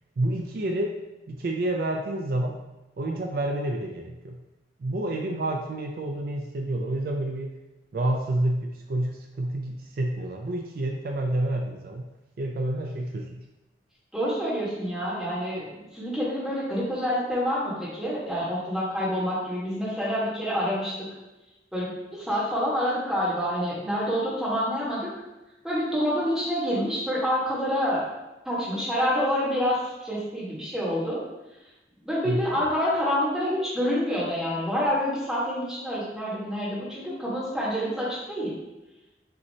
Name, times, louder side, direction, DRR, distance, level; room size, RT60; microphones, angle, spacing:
voice 1, 0.2-1.0 1.3-2.6 3.0-4.4 4.8-7.5 7.9-12.1 12.4-13.5 32.2-32.7, right 1 dB, 55° right, 1 dB, 0.4 m, -29 dB
voice 2, 14.1-21.1 21.7-25.1 25.6-28.1 28.4-31.2 32.0-38.5, equal, 5° right, -8 dB, 1.3 m, -27 dB
6.0 x 2.8 x 2.7 m, 1.0 s
head